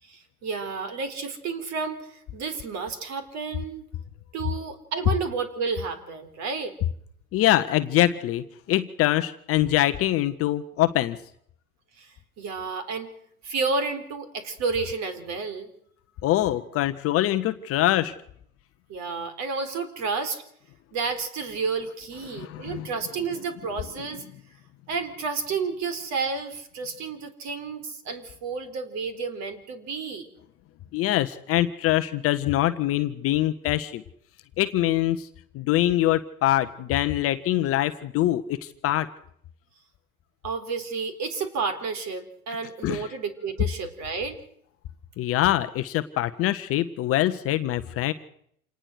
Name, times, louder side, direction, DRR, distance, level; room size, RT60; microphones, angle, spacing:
voice 1, 0.0-3.8 4.3-6.8 12.0-13.1 13.4-15.7 18.9-20.4 20.9-24.2 24.9-30.3 40.4-44.4, right 4 dB, 40° right, 10 dB, 4.2 m, -31 dB
voice 2, 7.3-11.2 16.2-18.1 22.3-22.9 30.9-34.0 34.6-35.3 35.5-39.1 42.8-43.1 45.2-48.1, left 14 dB, 30° left, 11 dB, 1.0 m, -24 dB
27.5 x 19.0 x 6.5 m, 0.67 s
figure-of-eight pair, 85°, 43 cm